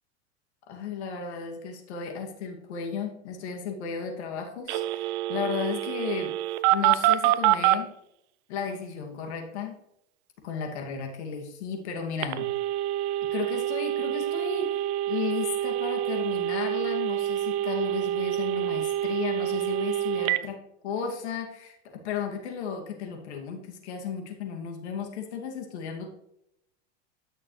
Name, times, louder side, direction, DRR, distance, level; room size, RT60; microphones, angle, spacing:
voice 1, 0.7-6.3 6.7-7.9 8.5-9.8 10.4-12.5 13.3-20.6 20.8-26.1, left 6 dB, 70° left, 3 dB, 2.5 m, -34 dB
Telephone, 4.7-7.8 12.2-20.4, right 14 dB, 45° right, 0.6 m, -26 dB
12.0 x 6.5 x 3.3 m, 0.77 s
hypercardioid pair, 105°, 34 cm